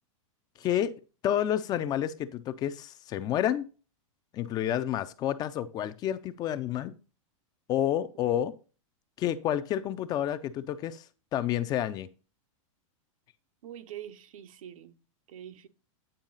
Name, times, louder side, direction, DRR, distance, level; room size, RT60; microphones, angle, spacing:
voice 1, 0.6-0.9 1.2-3.7 4.3-7.0 7.7-8.5 9.2-11.0 11.3-12.1, left 11 dB, 20° left, 0.4 m, -29 dB
voice 2, 13.6-15.0 15.3-15.7, right 10 dB, 75° right, 0.9 m, -45 dB
8.9 x 4.8 x 3.9 m
supercardioid pair, 145°, 18 cm